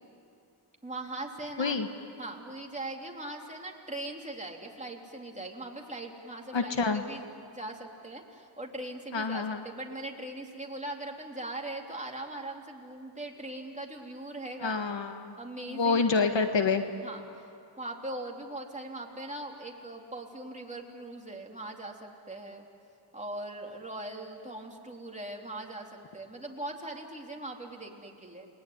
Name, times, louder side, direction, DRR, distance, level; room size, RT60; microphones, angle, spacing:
voice 1, 0.8-1.7 2.2-7.2 7.5-14.8 15.4-16.1 17.0-17.5 17.8-22.7 23.1-28.5, right 1 dB, 15° right, 0 dB, 3.6 m, -40 dB
voice 2, 6.5-7.0 9.1-9.6 14.6-15.3 15.6-16.8, left 4 dB, 65° left, 6 dB, 1.6 m, -27 dB
29.0 x 20.5 x 9.7 m, 2.5 s
cardioid pair, 65°, 47 cm